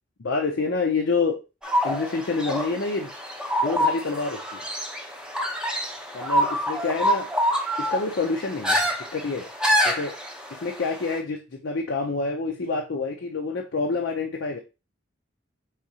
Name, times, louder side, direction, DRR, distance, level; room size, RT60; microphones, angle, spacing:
voice 1, 0.2-1.4 1.8-3.1 3.6-4.6 6.1-7.3 7.8-9.5 9.8-10.2 10.5-14.6, left 3 dB, 75° left, 2 dB, 0.6 m, -27 dB
sound 1, 1.6-11.2, equal, 5° right, 0.7 m, -26 dB
4.9 x 3.8 x 2.8 m, 0.28 s
head